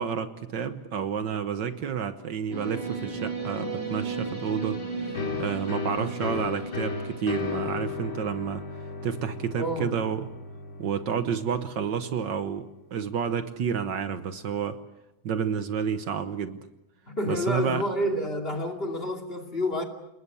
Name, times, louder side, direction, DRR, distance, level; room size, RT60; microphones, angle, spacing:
voice 1, 0.0-5.1 5.4-8.6 9.0-10.3 10.8-14.8 15.2-16.7 17.3-17.8, right 7 dB, 65° right, 1.7 m, -30 dB
sound 1, 2.5-7.6, right 4 dB, 10° left, 6.6 m, -35 dB
sound 2, 5.1-12.6, left 4 dB, 75° left, 3.5 m, -35 dB
voice 2, 9.6-10.0 17.1-19.8, left 1 dB, 30° left, 2.9 m, -29 dB
29.0 x 20.0 x 7.0 m
omnidirectional pair, 2.2 m